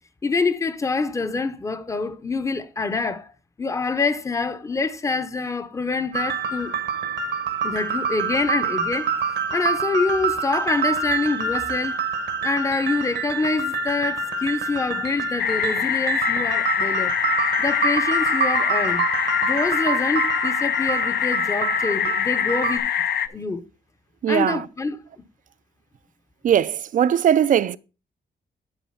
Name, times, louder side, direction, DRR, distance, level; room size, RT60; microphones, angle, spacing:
voice 1, 0.2-3.3 3.6-6.7 7.6-9.1 9.5-12.0 12.4-17.1 17.6-19.1 19.4-22.8 23.3-23.6 24.3-25.0, left 3 dB, 15° left, 0.6 m, -26 dB
sound 1, 6.1-22.8, right 5 dB, 85° right, 1.4 m, -27 dB
sound 2, 15.4-23.3, left 9 dB, 65° left, 0.6 m, -24 dB
voice 2, 24.2-24.7 26.4-27.8, right 9 dB, 50° right, 0.4 m, -19 dB
10.5 x 4.0 x 5.7 m
wide cardioid pair, 170°, 18 cm